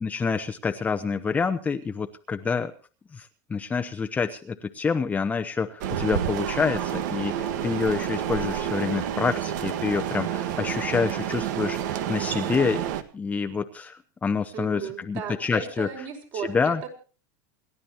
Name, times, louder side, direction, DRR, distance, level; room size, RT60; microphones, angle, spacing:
voice 1, 0.0-2.7 3.1-12.8 13.1-15.9 16.5-16.8, left 5 dB, 15° left, 7 dB, 0.9 m, -27 dB
sound 1, 5.8-13.0, right 10 dB, 70° right, 1.6 m, -29 dB
voice 2, 14.5-16.9, right 7 dB, 50° right, 3 dB, 5.1 m, -36 dB
28.5 x 12.0 x 3.0 m, 0.37 s
supercardioid pair, 140°, 10 cm